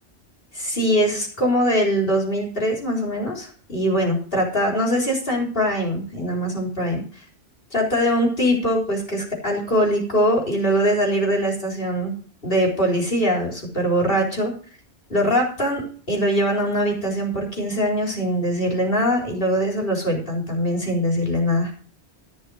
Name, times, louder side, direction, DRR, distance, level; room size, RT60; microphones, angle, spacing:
voice 1, 0.5-7.0 7.7-12.1 12.4-14.5 15.1-21.7, equal, 50° left, 0 dB, 4.2 m, -22 dB
15.0 x 6.2 x 6.2 m, 0.43 s
omnidirectional pair, 1.2 m